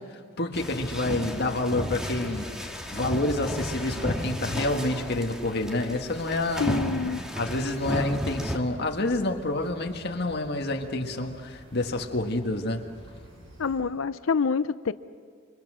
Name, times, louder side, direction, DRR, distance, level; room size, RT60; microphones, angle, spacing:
voice 1, 0.0-6.8 7.4-12.9, left 2 dB, 50° left, 3 dB, 1.8 m, -28 dB
sound 1, 0.5-8.6, equal, 5° right, 1.9 m, -33 dB
voice 2, 6.6-7.2 13.6-14.9, left 5 dB, 80° left, 14 dB, 0.6 m, -26 dB
sound 2, 7.6-13.8, equal, 85° right, 7.5 m, -49 dB
28.0 x 25.0 x 6.3 m, 2.1 s
head